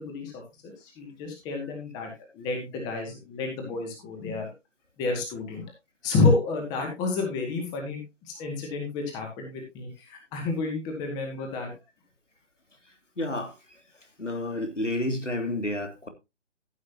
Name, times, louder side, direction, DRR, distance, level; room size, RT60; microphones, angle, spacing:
voice 1, 0.0-4.5 5.0-5.6 6.0-8.0 8.3-11.7, left 3 dB, 10° left, 2.2 m, -29 dB
voice 2, 13.2-13.6 14.2-16.1, left 1 dB, 80° left, 2.9 m, -30 dB
14.5 x 8.6 x 2.9 m
figure-of-eight pair, 145°, 36 cm